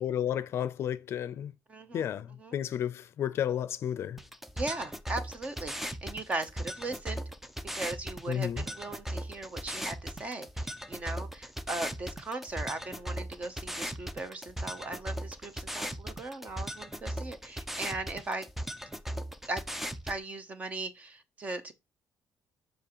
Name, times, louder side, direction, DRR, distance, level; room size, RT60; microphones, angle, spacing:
voice 1, 0.0-1.5 1.9-4.2 8.3-8.6, left 10 dB, 50° left, 0.5 m, -32 dB
voice 2, 1.7-2.0 2.4-2.6 4.6-7.2 7.7-18.5 19.5-19.6 20.0-21.7, right 2 dB, 25° right, 0.8 m, -38 dB
sound 1, 4.2-20.2, equal, 5° right, 0.5 m, -38 dB
7.2 x 5.2 x 3.0 m
cardioid pair, 170°, 6 cm